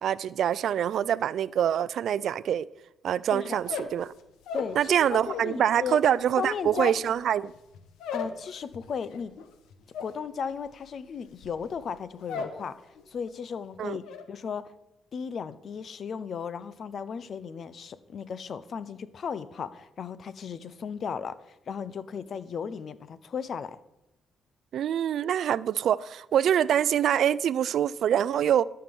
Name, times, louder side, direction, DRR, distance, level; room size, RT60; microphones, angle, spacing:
voice 1, 0.0-2.7 3.0-4.1 4.8-7.5 13.8-14.0 24.7-28.6, right 9 dB, 70° right, 0.4 m, -25 dB
sound 1, 3.5-5.6 5.9-12.6 12.9-13.4 13.7-14.2, left 6 dB, 90° left, 1.2 m, -39 dB
voice 2, 4.5-6.0 6.4-6.9 8.1-9.3 10.0-14.7 15.1-23.8, left 6 dB, 55° left, 0.7 m, -35 dB
13.0 x 5.9 x 7.0 m
cardioid pair, 90°, 0 cm